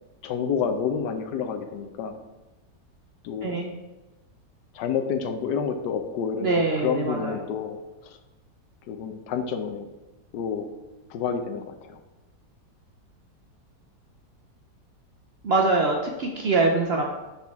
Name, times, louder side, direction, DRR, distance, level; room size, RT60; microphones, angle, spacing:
voice 1, 0.2-2.2 3.2-3.6 4.7-8.2 8.9-9.9 10.3-10.7 11.1-12.0, left 6 dB, 75° left, 6 dB, 1.2 m, -29 dB
voice 2, 3.4-3.7 6.4-7.4 15.4-17.0, right 3 dB, 75° right, 0 dB, 0.5 m, -23 dB
7.6 x 4.3 x 3.5 m, 1.1 s
omnidirectional pair, 1.9 m